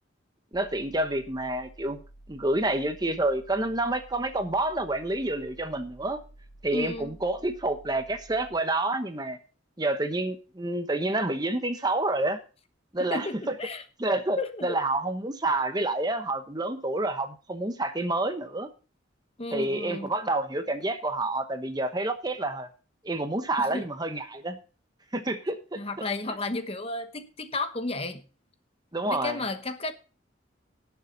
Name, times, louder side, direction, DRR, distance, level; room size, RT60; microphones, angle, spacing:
sound 1, 0.5-8.5, right 1 dB, 45° left, 4.0 m, -52 dB
voice 1, 0.5-2.0 2.3-6.2 6.6-9.4 9.8-12.4 12.9-13.5 14.0-18.7 19.5-22.7 23.0-24.6 25.1-26.1 28.9-29.4, right 2 dB, 20° right, 8 dB, 1.0 m, -28 dB
voice 2, 6.7-7.2 13.0-13.8 14.4-14.8 19.4-20.1 23.6-23.8 25.8-28.2 29.1-29.9, left 2 dB, 30° left, 9 dB, 1.0 m, -33 dB
18.0 x 7.0 x 4.0 m, 0.35 s
head